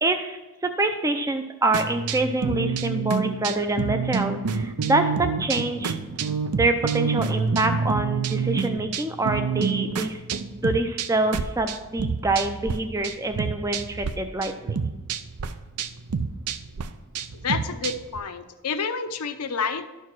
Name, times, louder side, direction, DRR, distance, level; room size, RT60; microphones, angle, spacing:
voice 1, 0.0-5.9 6.5-10.2 10.6-14.8, right 2 dB, 15° right, 6 dB, 0.4 m, -26 dB
sound 1, 1.7-12.8 13.0-14.1 14.4-18.2, right 5 dB, 80° right, 0.5 m, -28 dB
voice 2, 17.4-19.8, left 5 dB, 85° left, 9 dB, 0.7 m, -29 dB
12.0 x 4.6 x 6.0 m, 1.1 s
head